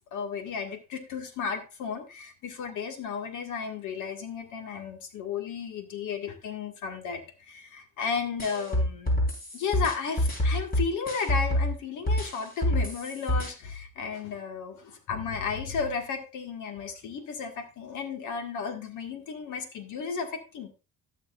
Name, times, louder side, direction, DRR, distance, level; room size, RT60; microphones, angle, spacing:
voice 1, 0.1-9.2 9.5-20.7, left 6 dB, 80° left, 5 dB, 1.9 m, -34 dB
sound 1, 8.4-11.7 12.1-13.5, left 1 dB, 30° left, 4.4 m, -26 dB
16.5 x 6.5 x 2.5 m, 0.30 s
cardioid pair, 90°, 30 cm